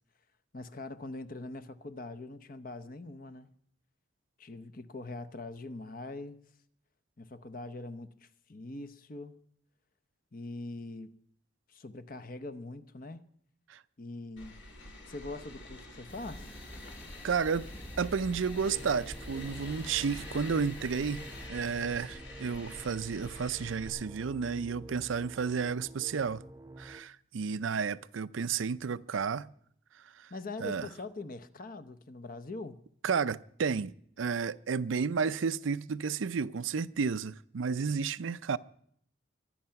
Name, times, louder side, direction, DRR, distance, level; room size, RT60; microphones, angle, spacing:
voice 1, 0.5-3.5 4.4-6.4 7.2-9.4 10.3-11.1 11.7-13.3 14.0-14.6 15.1-16.5 30.3-32.8, left 2 dB, 45° left, 0.8 m, -43 dB
sound 1, 14.4-23.9, left 2 dB, 65° left, 4.0 m, -47 dB
sound 2, 16.1-21.5, equal, 10° left, 0.9 m, -47 dB
voice 2, 17.2-17.7 18.0-26.4 26.8-29.5 30.0-30.3 30.6-30.9 33.0-38.6, right 5 dB, 90° right, 0.5 m, -32 dB
sound 3, 18.6-27.0, right 1 dB, 15° right, 0.6 m, -49 dB
23.5 x 8.7 x 5.8 m
head